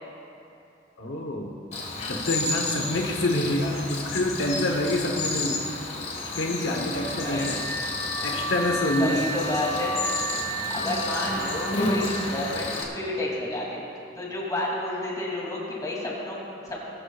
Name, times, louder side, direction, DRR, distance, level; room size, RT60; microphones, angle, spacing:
voice 1, 1.0-1.5 2.1-5.6 6.2-7.6 8.2-9.2, left 1 dB, 75° left, 1 dB, 1.0 m, -27 dB
Cricket, 1.7-12.8, left 2 dB, 35° left, 1.5 m, -31 dB
Car / Alarm, 6.7-12.2, right 1 dB, 55° right, 1.8 m, -34 dB
voice 2, 7.1-7.5 9.0-10.0 10.7-13.8 14.1-16.9, left 1 dB, 20° left, -4 dB, 2.7 m, -31 dB
20.5 x 13.0 x 2.4 m, 2.8 s
head